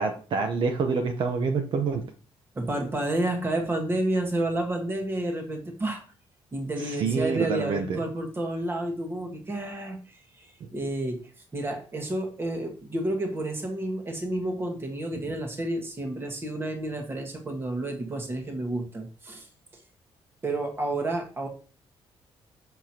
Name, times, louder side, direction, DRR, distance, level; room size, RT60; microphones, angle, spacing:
voice 1, 0.0-2.0 6.8-8.0, right 5 dB, 55° right, 4 dB, 0.8 m, -27 dB
voice 2, 2.5-6.0 6.5-11.2 11.5-19.5 20.4-21.5, right 1 dB, 25° right, 3 dB, 1.5 m, -30 dB
7.0 x 6.0 x 2.9 m, 0.37 s
cardioid pair, 170°, 10 cm